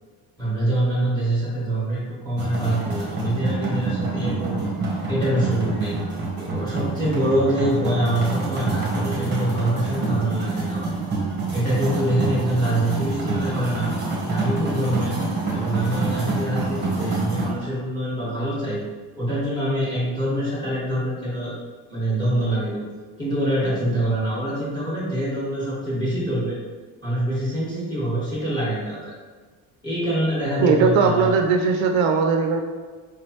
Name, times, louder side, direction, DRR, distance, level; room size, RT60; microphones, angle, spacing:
voice 1, 0.4-4.7 5.1-6.0 6.4-10.9 11.5-13.9 14.2-15.2 15.5-18.8 19.2-21.6 21.9-22.8 23.2-26.6 27.0-29.1 29.8-31.3, right 1 dB, 10° left, -7 dB, 1.4 m, -25 dB
sound 1, 2.4-17.5, right 3 dB, 20° right, 0.9 m, -27 dB
voice 2, 30.6-32.6, right 5 dB, 65° right, 4 dB, 0.5 m, -19 dB
4.8 x 3.1 x 3.0 m, 1.4 s
cardioid pair, 155°, 49 cm